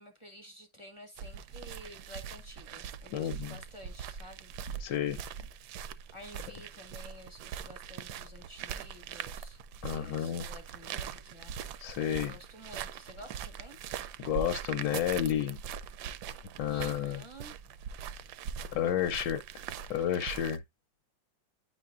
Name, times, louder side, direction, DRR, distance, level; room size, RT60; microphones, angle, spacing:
voice 1, 0.0-4.9 6.1-9.6 9.9-11.9 12.3-13.8 16.7-17.6, equal, 30° left, 0.5 m, -51 dB
sound 1, 1.2-20.6, right 8 dB, 75° right, 1.0 m, -42 dB
voice 2, 3.1-3.6 4.8-5.2 9.8-10.4 11.8-12.3 14.2-15.6 16.6-17.2 18.7-19.4 19.9-20.6, left 10 dB, 75° left, 1.2 m, -31 dB
9.2 x 4.4 x 2.4 m
omnidirectional pair, 2.1 m